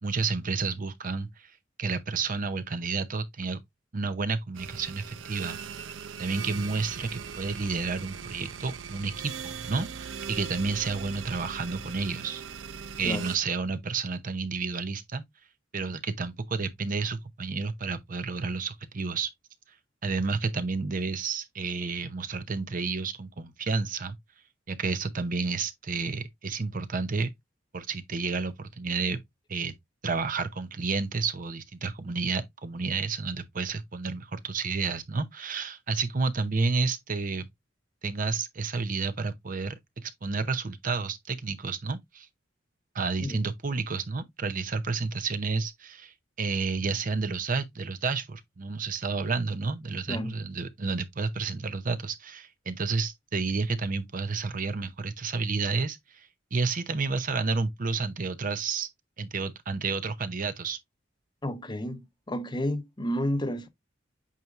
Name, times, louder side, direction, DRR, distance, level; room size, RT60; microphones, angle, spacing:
voice 1, 0.0-1.5 1.8-3.6 3.9-5.6 6.2-12.4 13.0-15.2 15.7-19.3 20.0-24.2 24.7-27.3 27.7-29.2 29.5-29.7 30.0-37.5 38.0-42.3 42.9-58.9 59.2-60.8, right 4 dB, 45° right, 0.7 m, -31 dB
sound 1, 4.5-13.4, right 6 dB, 80° right, 0.6 m, -40 dB
voice 2, 61.4-63.7, left 1 dB, 25° left, 0.8 m, -31 dB
8.4 x 4.6 x 2.4 m
head